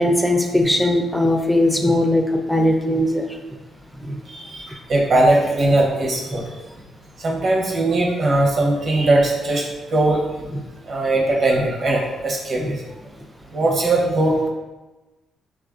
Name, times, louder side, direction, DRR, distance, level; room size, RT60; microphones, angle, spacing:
voice 1, 0.0-3.3 4.0-4.2 6.3-6.4 10.5-10.6 12.6-12.8, left 1 dB, ahead, 3 dB, 0.3 m, -19 dB
voice 2, 4.3-6.4 7.2-10.2 10.9-12.8 13.5-14.5, right 2 dB, 50° right, -1 dB, 0.7 m, -19 dB
3.0 x 2.4 x 2.4 m, 1.1 s
cardioid pair, 90°, 0 cm